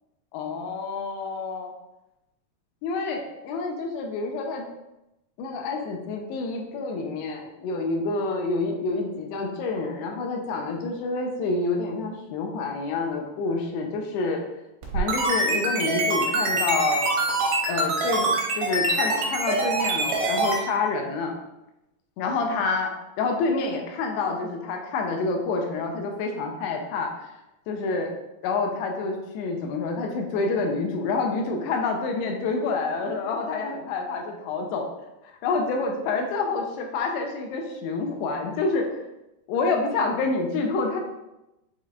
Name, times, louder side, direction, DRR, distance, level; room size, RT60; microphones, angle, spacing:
voice 1, 0.3-1.7 2.8-4.6 5.4-14.4 14.9-17.1 17.7-21.4 22.2-27.1 27.7-28.1 28.4-34.9 35.4-39.0 39.5-41.0, left 3 dB, 85° left, 2 dB, 2.7 m, -28 dB
sound 1, 14.8-20.6, right 2 dB, 75° right, 2.9 m, -24 dB
7.3 x 3.1 x 2.4 m, 0.93 s
omnidirectional pair, 4.7 m